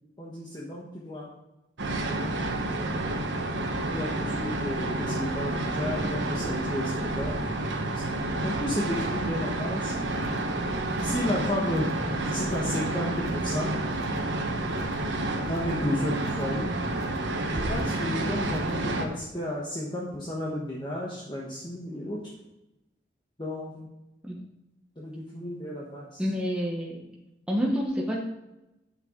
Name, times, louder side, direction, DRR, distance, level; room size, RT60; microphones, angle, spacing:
voice 1, 0.2-1.3 2.1-3.3 3.9-7.5 7.9-9.9 11.0-13.7 15.4-16.7 17.5-22.2 23.4-23.9 25.0-26.2, left 1 dB, 25° left, -4 dB, 1.3 m, -33 dB
sound 1, 1.8-19.0, right 2 dB, 85° right, 1.2 m, -29 dB
sound 2, 10.1-10.5 10.8-11.3 11.6-12.0 12.3-12.8 13.1-13.5 13.8-14.3 14.6-15.1 15.4-15.8 16.1-16.5 16.8-17.3 17.6-18.1 18.4-18.8 19.1-19.2, right 1 dB, 35° right, 1.4 m, -46 dB
voice 2, 26.2-27.0 27.5-28.2, equal, 5° right, -3 dB, 1.1 m, -28 dB
9.0 x 6.8 x 3.8 m, 0.95 s
head